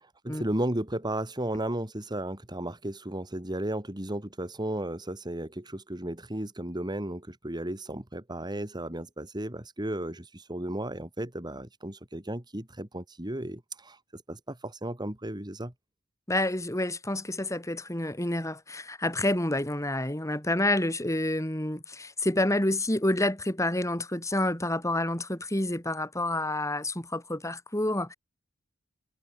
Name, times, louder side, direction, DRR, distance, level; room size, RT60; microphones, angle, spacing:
voice 1, 0.0-15.7, right 1 dB, 20° right, 2.4 m, -34 dB
voice 2, 16.3-28.1, left 1 dB, 15° left, 3.5 m, -28 dB
head